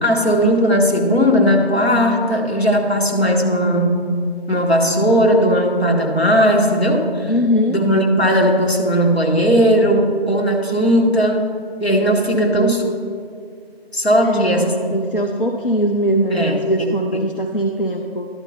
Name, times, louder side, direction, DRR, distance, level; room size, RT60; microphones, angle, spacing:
voice 1, 0.0-4.0 4.5-7.3 7.7-11.5 11.8-12.8 13.9-14.7 16.3-16.6, equal, 75° left, 1 dB, 1.4 m, -17 dB
voice 2, 7.3-7.8 12.3-12.8 14.2-18.3, equal, 60° left, 3 dB, 0.5 m, -20 dB
11.0 x 4.3 x 5.6 m, 2.3 s
figure-of-eight pair, 175°, 32 cm